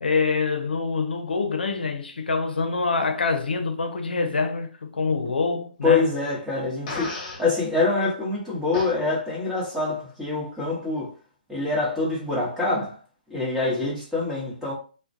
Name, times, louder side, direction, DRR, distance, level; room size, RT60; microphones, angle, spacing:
voice 1, 0.0-6.1, left 4 dB, 90° left, 0.5 m, -25 dB
voice 2, 5.8-11.1 11.5-13.0 13.3-14.7, left 3 dB, 5° right, 0.9 m, -25 dB
Fart, 6.9-7.4 8.7-8.9, left 3 dB, 45° left, 0.9 m, -32 dB
2.3 x 2.1 x 2.6 m
hypercardioid pair, 145°, 5 cm